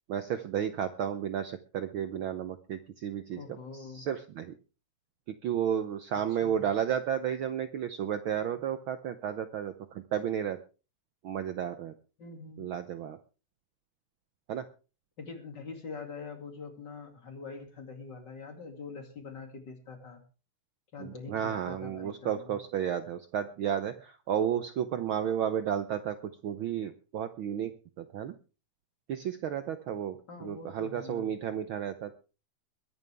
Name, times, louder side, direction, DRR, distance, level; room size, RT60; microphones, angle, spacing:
voice 1, 0.1-3.4 3.7-4.5 5.4-10.6 11.2-11.9 12.6-13.2 14.5-14.6 21.0-26.1 26.4-27.7 28.1-28.3 29.1-32.1, right 9 dB, 85° right, 10 dB, 1.1 m, -32 dB
voice 2, 3.3-4.0 6.1-6.7 12.2-12.7 15.2-20.2 20.9-22.6 30.3-31.3, left 4 dB, 40° left, 4 dB, 2.8 m, -44 dB
22.0 x 11.0 x 3.4 m, 0.34 s
omnidirectional pair, 3.4 m